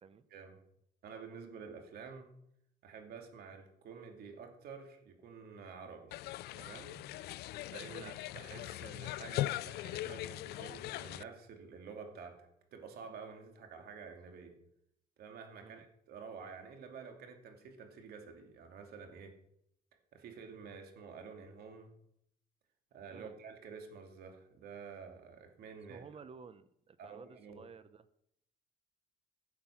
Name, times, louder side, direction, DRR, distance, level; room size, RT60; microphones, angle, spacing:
voice 1, 1.0-2.3 2.8-6.2 6.5-7.0 7.7-14.5 15.2-19.3 20.1-21.9 22.9-26.0 27.0-27.6, right 5 dB, 65° right, 4 dB, 2.6 m, -50 dB
sound 1, 6.1-11.2, left 15 dB, 70° left, 0.4 m, -40 dB
voice 2, 25.9-28.1, right 5 dB, 35° right, 14 dB, 0.8 m, -54 dB
16.5 x 7.6 x 5.9 m, 0.75 s
cardioid pair, 110°, 17 cm